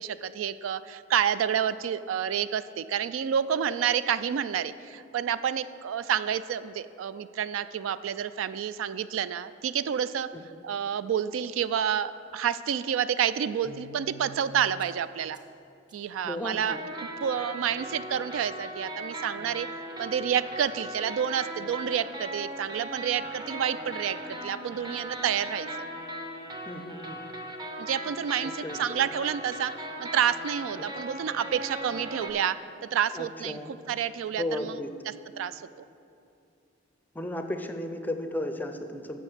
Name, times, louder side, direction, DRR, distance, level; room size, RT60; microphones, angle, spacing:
voice 1, 0.0-10.3 10.6-15.4 15.9-16.8 17.2-19.7 20.0-25.9 27.8-29.7 30.0-32.6 32.9-33.6 33.9-34.8 35.4-35.6, right 8 dB, 75° right, 14 dB, 0.3 m, -29 dB
sound 1, 13.6-14.4 14.8-14.9 15.3-15.4 15.9-16.0 16.7-32.3, right 1 dB, 25° right, 0.8 m, -39 dB
voice 2, 16.2-16.8 26.7-27.2 28.4-29.0 30.8-30.9 33.1-33.8 34.4-34.9 37.1-39.2, left 1 dB, 10° left, 7 dB, 0.5 m, -34 dB
7.7 x 7.0 x 6.3 m, 2.6 s
head